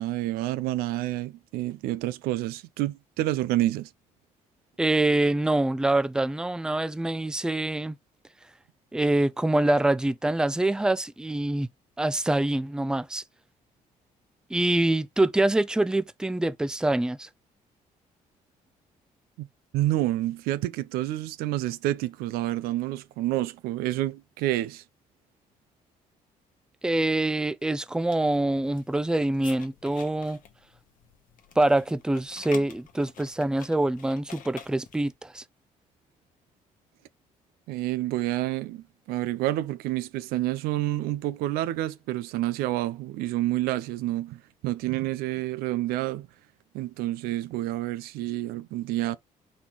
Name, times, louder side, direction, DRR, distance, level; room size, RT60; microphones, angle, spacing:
voice 1, 0.0-3.9 19.4-19.5 19.7-24.8 37.7-46.3 46.7-49.2, right 15 dB, 85° right, 0.4 m, -29 dB
voice 2, 4.8-8.0 8.9-11.7 12.0-13.2 14.5-17.3 26.8-30.4 31.6-35.4, right 1 dB, 5° right, 0.4 m, -25 dB
sound 1, 27.9-35.1, left 8 dB, 65° left, 1.0 m, -49 dB
4.2 x 3.5 x 3.0 m
supercardioid pair, 70°, 15 cm